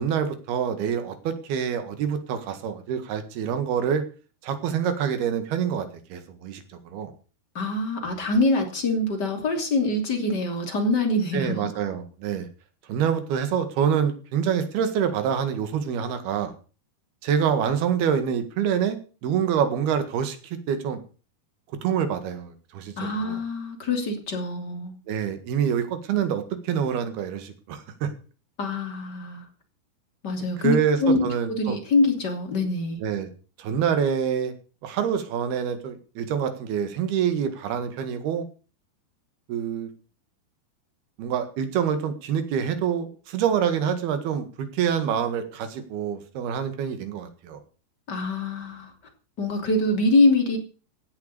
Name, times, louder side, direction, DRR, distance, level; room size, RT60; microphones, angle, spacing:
voice 1, 0.0-4.0 4.4-7.1 11.3-12.5 12.9-16.5 17.2-21.0 21.8-23.4 25.1-28.1 30.6-31.8 33.0-33.3 33.6-34.5 34.8-38.5 39.5-39.9 41.2-47.6, right 8 dB, 70° right, 9 dB, 3.7 m, -26 dB
voice 2, 7.5-11.7 23.0-24.9 28.6-29.4 30.2-30.7 31.0-31.2 31.5-33.0 48.1-48.9 49.4-50.6, left 2 dB, 30° left, 4 dB, 3.1 m, -24 dB
16.5 x 8.2 x 6.9 m, 0.37 s
omnidirectional pair, 4.7 m